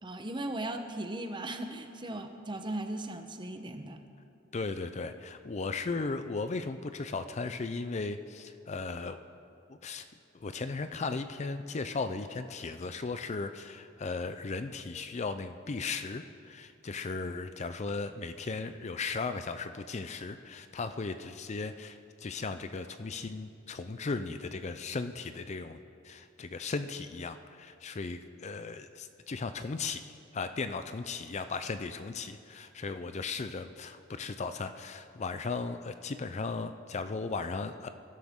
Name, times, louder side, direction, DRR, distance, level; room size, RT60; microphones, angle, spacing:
voice 1, 0.0-4.0, right 1 dB, 25° right, 6 dB, 0.9 m, -37 dB
voice 2, 4.5-9.2 9.7-10.1 10.3-25.8 26.0-30.0 30.3-37.9, left 4 dB, 35° left, 10 dB, 0.5 m, -36 dB
23.0 x 12.0 x 3.7 m, 2.5 s
head